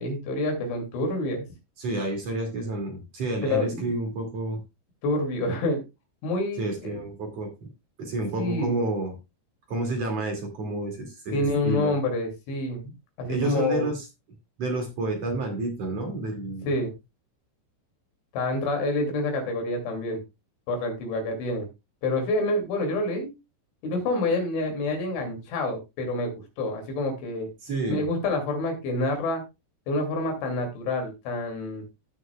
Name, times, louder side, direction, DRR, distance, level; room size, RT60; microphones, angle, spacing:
voice 1, 0.0-1.5 3.4-3.9 5.0-5.8 6.2-7.0 8.4-8.7 11.3-12.9 13.2-13.9 16.6-16.9 18.3-20.2 20.7-21.7 22.0-23.3 23.8-27.5 27.9-29.4 29.9-31.8, left 2 dB, 75° left, 3 dB, 4.8 m, -27 dB
voice 2, 1.8-4.6 6.6-7.5 8.0-9.1 9.7-11.9 13.3-14.1 14.6-16.7 27.6-28.0, right 2 dB, 45° right, 2 dB, 2.6 m, -29 dB
17.0 x 6.3 x 2.3 m, 0.25 s
omnidirectional pair, 5.6 m